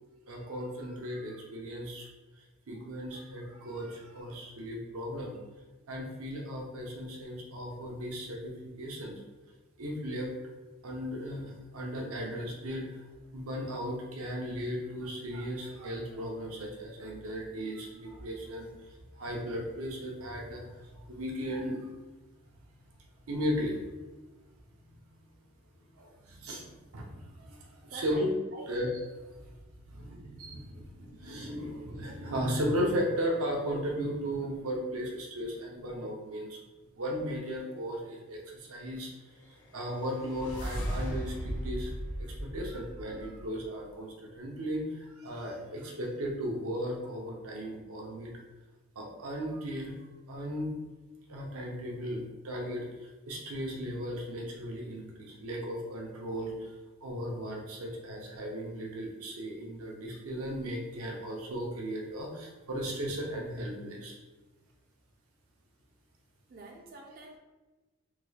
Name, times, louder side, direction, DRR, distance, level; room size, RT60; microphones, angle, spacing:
voice 1, 0.3-2.1 2.7-5.3 5.9-9.2 9.8-10.3 10.8-13.0 13.3-18.9 19.2-21.9 23.3-23.8 26.0-28.3 28.7-28.9 29.9-36.6 37.0-39.1 39.5-41.9 42.2-48.3 49.0-49.9 50.3-50.7 51.3-56.7 57.0-64.2, equal, 80° right, -1 dB, 0.7 m, -36 dB
voice 2, 27.9-28.8 66.5-67.4, right 1 dB, 40° right, 2 dB, 0.4 m, -47 dB
sound 1, 39.5-43.7, equal, 75° left, 1.2 m, -37 dB
3.6 x 2.3 x 3.2 m, 1.2 s
head